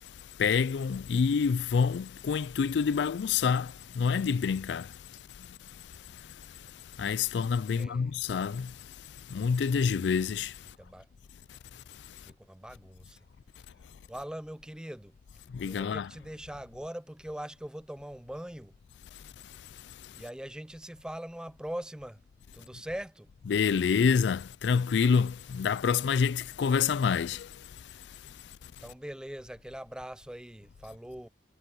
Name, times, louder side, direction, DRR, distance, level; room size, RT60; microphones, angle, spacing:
voice 1, 0.4-4.9 7.0-8.7 9.3-10.5 15.5-16.1 23.5-27.5, left 6 dB, 80° left, 0.4 m, -27 dB
voice 2, 7.7-8.2 10.8-11.1 12.2-13.2 14.1-15.1 15.6-18.7 20.1-22.2 22.5-23.3 28.8-31.3, right 1 dB, 5° right, 0.4 m, -41 dB
head